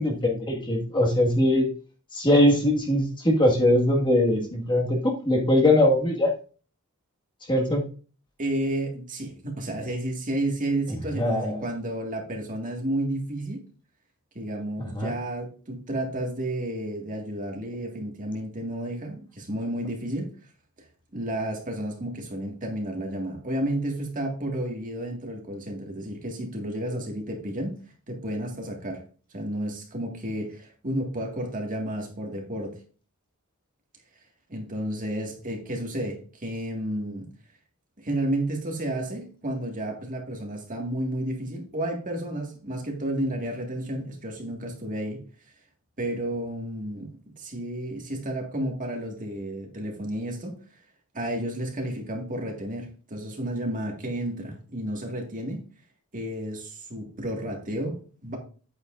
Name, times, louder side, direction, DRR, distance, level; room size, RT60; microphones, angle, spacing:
voice 1, 0.0-1.7 2.1-6.3 7.5-7.8 11.1-11.7 14.8-15.1, left 1 dB, 20° left, 1.8 m, -21 dB
voice 2, 8.4-13.6 14.4-20.3 21.1-27.8 28.1-29.0 29.3-32.8 34.5-37.3 38.0-45.2 46.0-50.6 51.1-55.6 56.1-58.4, right 1 dB, 40° right, 1.9 m, -31 dB
9.5 x 8.8 x 2.6 m
head